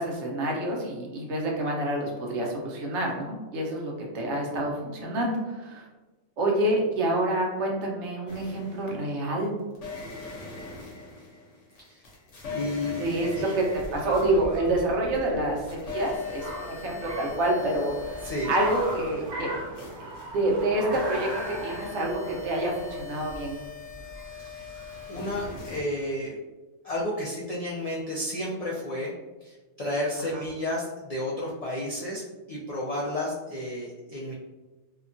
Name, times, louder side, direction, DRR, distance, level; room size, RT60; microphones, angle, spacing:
voice 1, 0.0-5.8 6.4-9.5 13.0-13.3 13.5-13.6 13.9-19.9 20.3-23.6 30.3-30.4, right 1 dB, 75° right, -1 dB, 1.0 m, -28 dB
sound 1, 8.3-9.2 9.7-15.2 15.4-25.8, left 5 dB, 85° left, 1.1 m, -40 dB
voice 2, 12.5-13.0 13.3-13.6 18.2-18.5 24.4-24.7 25.1-26.4 26.8-29.1 29.4-34.3, left 1 dB, 70° left, -5 dB, 0.3 m, -32 dB
Car, 13.5-25.7, right 1 dB, 30° right, 0.5 m, -39 dB
2.8 x 2.2 x 2.5 m, 1.2 s
omnidirectional pair, 1.2 m